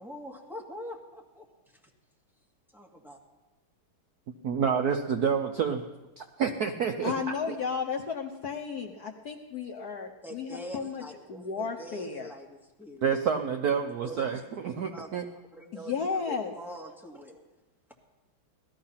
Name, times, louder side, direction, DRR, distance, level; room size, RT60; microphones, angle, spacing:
voice 1, 0.0-1.5 2.7-3.2 10.2-13.2 14.0-14.2 14.9-15.1 15.5-17.4, equal, ahead, -2 dB, 1.8 m, -44 dB
voice 2, 4.4-5.8 6.2-7.1 13.0-15.3, right 7 dB, 60° right, 5 dB, 1.0 m, -28 dB
voice 3, 7.0-12.3 15.7-16.6, left 5 dB, 55° left, 2 dB, 1.3 m, -34 dB
17.5 x 13.5 x 5.7 m, 1.1 s
omnidirectional pair, 2.4 m